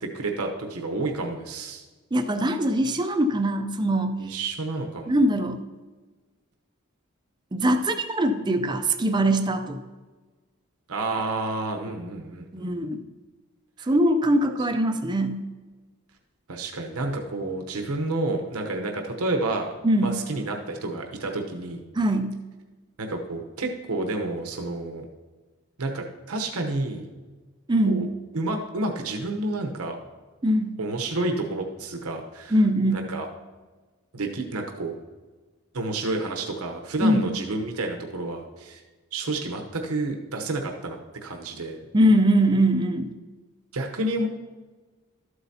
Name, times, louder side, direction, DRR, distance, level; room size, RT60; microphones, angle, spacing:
voice 1, 0.0-1.8 4.2-5.2 10.9-12.7 13.8-13.9 16.5-19.7 20.0-21.8 23.0-25.1 25.8-27.1 27.9-28.1 28.3-30.0 30.8-32.6 32.9-33.3 34.1-34.9 35.7-38.8 39.1-41.8 43.7-44.3, right 2 dB, 80° right, 3 dB, 0.9 m, -30 dB
voice 2, 2.1-4.2 5.1-5.6 7.5-9.8 12.5-13.0 13.9-15.4 19.8-20.2 21.9-22.4 27.7-28.0 30.4-30.8 32.5-33.1 37.0-37.3 41.9-43.1, right 1 dB, 20° right, 6 dB, 0.4 m, -22 dB
13.0 x 8.0 x 2.8 m, 1.3 s
head